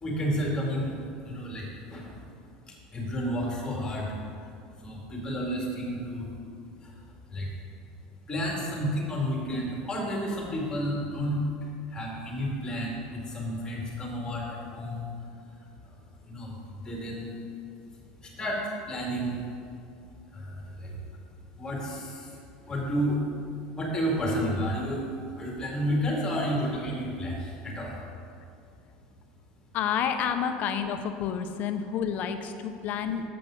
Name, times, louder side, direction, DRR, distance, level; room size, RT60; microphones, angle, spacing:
voice 1, 0.0-2.2 2.7-4.1 4.8-6.2 6.8-6.9 7.3-7.5 8.3-11.4 11.9-15.1 16.2-16.5 16.8-17.3 18.2-18.6 18.9-19.4 20.3-21.0 21.6-22.3 22.7-23.2 23.8-25.1 25.4-28.0, equal, 20° left, -2 dB, 2.2 m, -31 dB
voice 2, 29.7-33.2, left 8 dB, 45° left, 8 dB, 0.6 m, -29 dB
7.8 x 5.3 x 6.4 m, 2.4 s
supercardioid pair, 130°, 4 cm